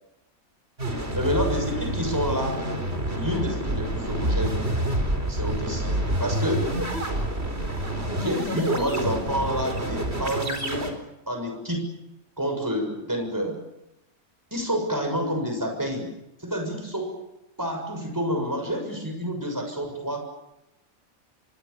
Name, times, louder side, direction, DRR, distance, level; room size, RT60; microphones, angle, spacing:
sound 1, 0.8-10.9, right 1 dB, 45° right, 4.6 m, -28 dB
voice 1, 1.1-2.7 3.0-4.6 5.3-6.7 8.1-10.9 11.3-11.9 12.4-13.6 14.5-16.1 16.4-17.2 17.6-20.2, equal, 15° right, 4 dB, 6.6 m, -28 dB
28.5 x 24.5 x 7.0 m, 0.90 s
omnidirectional pair, 1.5 m